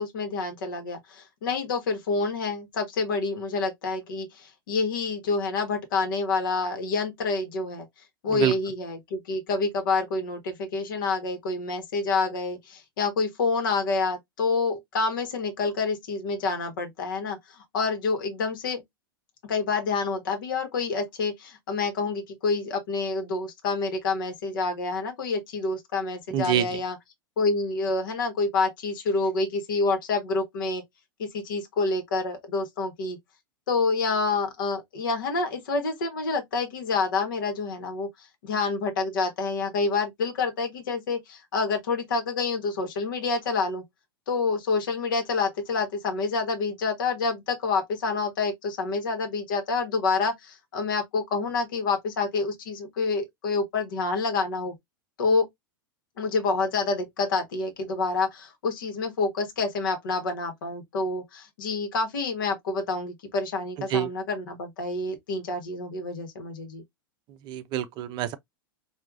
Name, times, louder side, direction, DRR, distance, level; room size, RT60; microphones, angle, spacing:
voice 1, 0.0-7.9 8.2-18.8 19.4-27.0 27.4-30.8 31.2-33.2 33.7-43.8 44.3-54.7 55.2-55.4 56.2-66.8, left 4 dB, 60° left, 1.5 m, -28 dB
voice 2, 26.3-26.6 63.9-64.1 67.5-68.4, right 11 dB, 35° right, 0.6 m, -25 dB
4.6 x 2.7 x 2.5 m
figure-of-eight pair, 95°, 12 cm